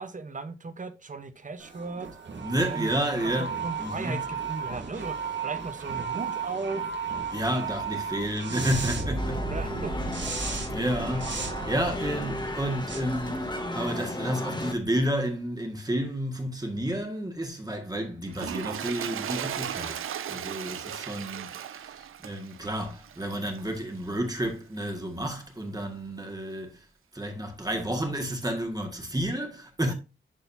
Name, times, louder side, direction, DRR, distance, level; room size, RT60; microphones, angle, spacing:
voice 1, 0.0-2.1 2.7-2.9 3.4-5.2 5.4-6.9 9.5-10.1, right 4 dB, 40° right, 0.9 m, -36 dB
sound 1, 1.6-14.0, right 4 dB, 60° right, 1.4 m, -34 dB
voice 2, 2.4-3.5 3.8-4.2 7.3-9.4 10.7-11.3 11.7-26.9 27.1-29.9, right 1 dB, 20° right, 1.7 m, -31 dB
sound 2, 9.2-14.7, left 1 dB, 20° left, 1.2 m, -34 dB
Toilet flush, 18.3-23.8 24.4-24.6, right 9 dB, 80° right, 0.5 m, -36 dB
11.0 x 4.1 x 2.7 m
cardioid pair, 75°, 21 cm